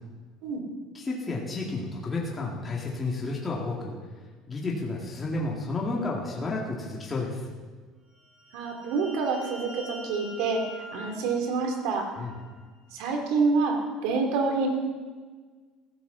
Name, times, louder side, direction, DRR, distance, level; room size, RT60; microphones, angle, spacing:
voice 1, 0.9-3.9 4.5-7.4 12.2-12.3, left 3 dB, 20° left, -3 dB, 2.4 m, -31 dB
sound 1, 8.1-12.6, left 1 dB, 20° right, 4.8 m, -45 dB
voice 2, 8.5-12.2 12.9-14.7, right 4 dB, 75° right, 2 dB, 3.1 m, -27 dB
15.5 x 15.0 x 4.2 m, 1.5 s
cardioid pair, 150°, 0 cm